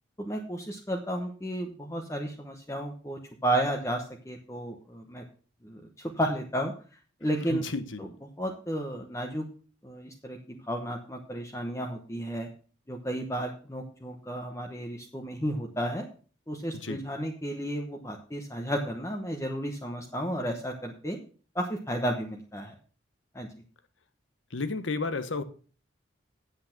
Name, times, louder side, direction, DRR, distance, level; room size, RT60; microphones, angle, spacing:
voice 1, 0.2-5.2 5.6-6.7 7.2-7.6 8.0-8.1 8.4-9.5 9.8-12.5 12.9-16.1 16.5-21.2 21.5-22.7 23.3-23.5, right 1 dB, 15° left, 1.0 m, -33 dB
voice 2, 7.5-8.1 16.7-17.0 24.5-25.4, left 3 dB, 85° left, 1.1 m, -32 dB
8.5 x 7.9 x 5.8 m
head